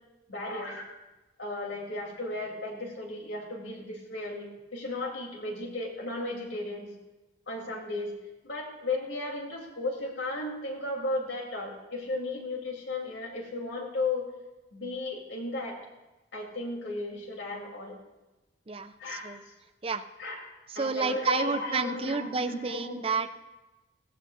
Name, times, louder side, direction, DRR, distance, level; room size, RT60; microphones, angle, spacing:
voice 1, 0.3-0.8 1.4-6.9 7.5-8.1 8.4-14.3 14.7-15.8 16.3-18.0 19.0-19.5 20.2-20.4 20.7-23.1, left 2 dB, 80° left, -1 dB, 3.1 m, -35 dB
voice 2, 18.7-19.4 19.8-20.0 20.7-23.3, right 4 dB, 30° right, 10 dB, 0.5 m, -30 dB
17.5 x 16.0 x 2.6 m, 1.1 s
head